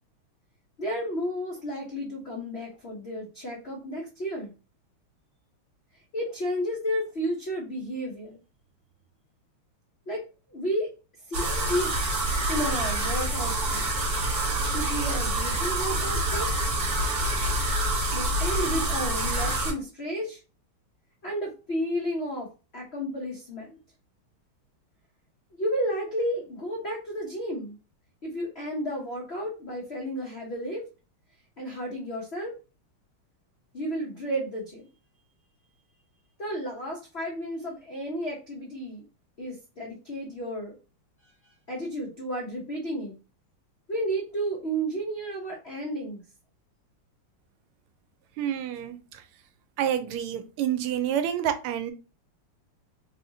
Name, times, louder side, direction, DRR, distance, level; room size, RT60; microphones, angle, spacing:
voice 1, 0.8-4.5 6.1-8.4 10.1-10.2 10.5-10.9 11.3-11.9 12.5-13.9 14.7-16.5 18.1-20.4 21.2-23.8 25.5-27.7 28.2-30.8 31.6-32.5 33.7-34.8 36.4-39.0 39.4-40.7 41.7-43.2 43.9-46.2, equal, 85° left, -2 dB, 0.5 m, -32 dB
sound 1, 11.3-19.7, right 1 dB, 50° right, 1.5 m, -27 dB
voice 2, 48.4-49.2 49.8-51.9, right 10 dB, 80° right, 10 dB, 1.5 m, -28 dB
4.0 x 2.8 x 2.7 m, 0.32 s
omnidirectional pair, 2.4 m